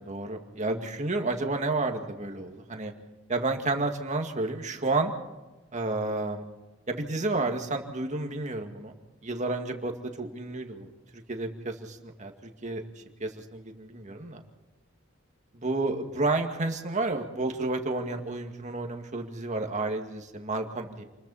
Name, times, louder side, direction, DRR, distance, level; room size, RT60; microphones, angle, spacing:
voice 1, 0.0-2.9 3.3-5.1 5.7-6.4 6.9-8.9 9.2-10.9 11.3-12.3 12.6-12.8 13.2-14.4 15.5-21.0, right 2 dB, 35° right, 4 dB, 2.1 m, -31 dB
28.5 x 21.5 x 4.3 m, 1.1 s
head